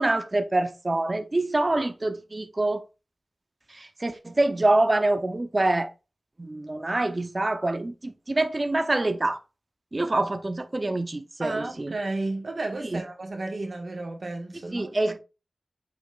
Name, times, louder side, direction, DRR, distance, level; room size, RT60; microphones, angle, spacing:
voice 1, 0.0-2.8 3.7-5.9 6.4-9.4 9.9-11.9 12.9-13.0 14.7-15.2, right 2 dB, 35° right, 0.7 m, -25 dB
voice 2, 11.4-15.0, right 2 dB, 60° right, 1.5 m, -32 dB
8.2 x 5.2 x 2.4 m
wide cardioid pair, 80°, 0 cm